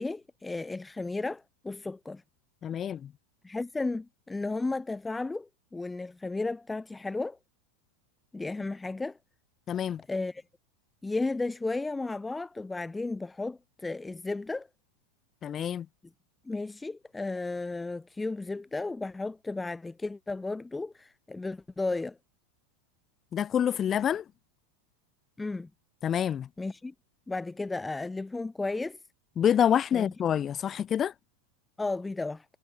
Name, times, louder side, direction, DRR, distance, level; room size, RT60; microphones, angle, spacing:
voice 1, 0.0-2.2 3.4-7.4 8.3-9.2 10.1-10.4 11.0-14.7 16.4-22.2 25.4-25.7 26.6-26.9 27.3-29.0 29.9-30.1 31.8-32.4, left 3 dB, 10° left, 1.5 m, -34 dB
voice 2, 2.6-3.1 9.7-10.0 15.4-15.9 23.3-24.2 26.0-26.5 29.4-31.1, left 9 dB, 25° left, 0.6 m, -27 dB
supercardioid pair, 135°, 0 cm